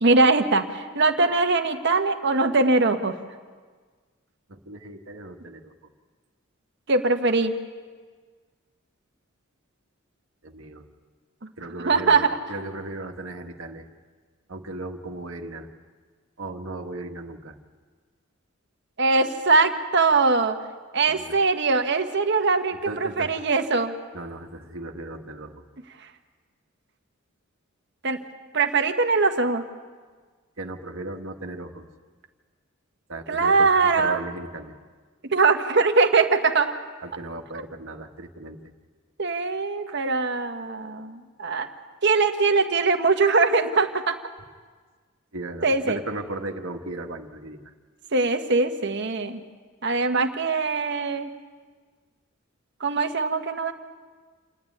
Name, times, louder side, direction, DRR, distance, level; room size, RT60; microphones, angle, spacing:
voice 1, 0.0-3.2 6.9-7.6 11.4-11.5 11.8-12.4 19.0-20.6 20.9-23.9 26.0-26.1 28.0-28.2 28.5-29.6 33.3-34.2 35.3-36.7 37.5-37.6 39.2-41.7 42.0-44.2 45.6-46.0 48.1-49.4 49.8-51.3 52.8-53.7, right 3 dB, 55° right, 6 dB, 1.3 m, -22 dB
voice 2, 4.5-5.7 10.4-10.9 11.6-13.8 14.5-15.7 16.4-17.6 21.1-21.4 22.9-23.3 24.1-25.6 30.6-31.8 33.1-34.7 37.0-38.6 39.9-40.0 45.3-47.7, right 2 dB, 75° right, 4 dB, 1.6 m, -36 dB
28.0 x 9.6 x 9.7 m, 1.5 s
head